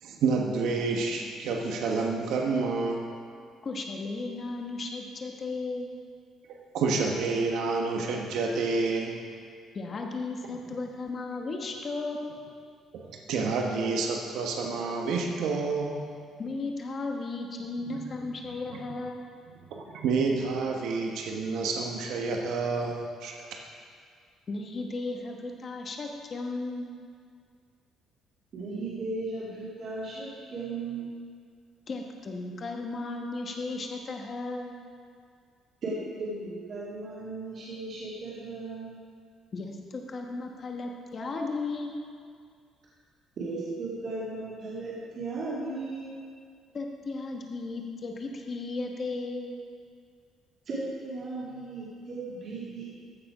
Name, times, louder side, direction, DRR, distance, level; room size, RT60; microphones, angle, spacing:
voice 1, 0.0-3.1 6.5-9.2 12.9-16.1 17.8-18.0 18.7-18.8 19.6-23.3, right 4 dB, 70° right, 1 dB, 1.2 m, -29 dB
voice 2, 3.6-5.9 9.7-12.4 16.4-19.3 24.5-26.9 31.9-34.7 39.5-42.0 46.7-49.5, left 3 dB, 30° left, 2 dB, 1.2 m, -35 dB
voice 3, 28.5-31.1 35.8-38.9 43.4-46.2 50.6-52.8, right 2 dB, 40° right, -8 dB, 2.4 m, -36 dB
14.0 x 6.9 x 4.9 m, 2.2 s
cardioid pair, 160°, 0 cm